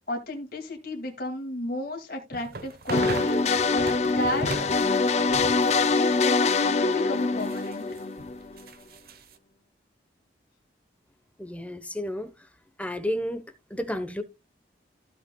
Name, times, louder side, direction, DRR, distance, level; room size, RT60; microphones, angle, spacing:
voice 1, 0.1-3.4 3.7-4.5 5.9-7.9, left 1 dB, 50° left, 2.4 m, -33 dB
sound 1, 2.3-7.1 7.4-9.3, right 2 dB, 55° right, 1.1 m, -37 dB
sound 2, 2.9-8.7, left 4 dB, 35° left, 0.4 m, -24 dB
voice 2, 11.4-12.5 12.8-13.4 13.7-14.2, equal, 5° left, 1.0 m, -31 dB
15.0 x 5.8 x 2.3 m
head